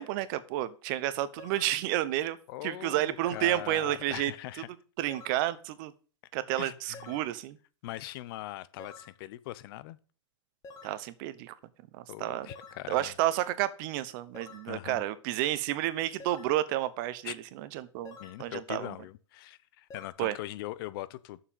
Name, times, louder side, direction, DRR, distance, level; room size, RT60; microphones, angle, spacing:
voice 1, 0.0-2.4 2.6-4.3 5.0-5.9 6.3-7.6 10.8-11.5 11.9-12.5 12.9-18.9 20.2-20.3, right 14 dB, 40° right, 1.0 m, -31 dB
sound 1, 1.4-1.8 3.2-3.6 5.1-5.5 6.9-7.3 8.8-9.2 10.6-11.0 12.5-12.9 14.3-14.7 16.2-16.6 18.0-18.4 19.9-20.1, left 3 dB, 20° left, 1.9 m, -49 dB
voice 2, 2.5-4.7 6.6-7.2 7.8-10.0 12.1-13.1 14.7-15.0 17.2-17.3 18.2-21.4, left 16 dB, 45° left, 0.8 m, -41 dB
7.1 x 6.8 x 7.3 m
hypercardioid pair, 125°, 16 cm